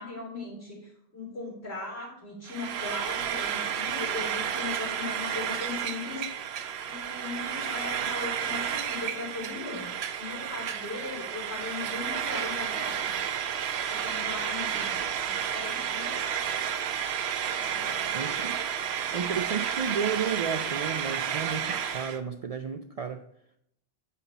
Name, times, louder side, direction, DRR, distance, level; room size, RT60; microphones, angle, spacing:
voice 1, 0.0-6.5 6.9-13.1 13.9-15.0 15.3-16.3 17.6-18.4, left 3 dB, 75° left, -3 dB, 3.7 m, -39 dB
Frying (food), 2.5-22.2, right 8 dB, 80° right, 0.9 m, -31 dB
voice 2, 18.1-23.2, right 6 dB, 55° right, 6 dB, 0.4 m, -33 dB
8.3 x 5.6 x 4.1 m, 0.74 s
omnidirectional pair, 1.1 m